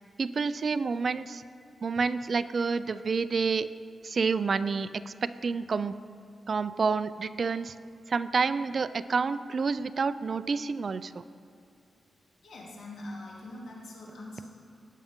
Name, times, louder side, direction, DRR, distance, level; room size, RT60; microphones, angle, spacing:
voice 1, 0.2-1.4 1.8-3.7 4.0-6.0 6.5-7.8 8.1-11.2, right 5 dB, 50° right, 14 dB, 0.4 m, -29 dB
voice 2, 12.4-14.5, left 1 dB, 85° left, -4 dB, 2.9 m, -43 dB
19.0 x 9.0 x 3.7 m, 2.5 s
cardioid pair, 90°, 0 cm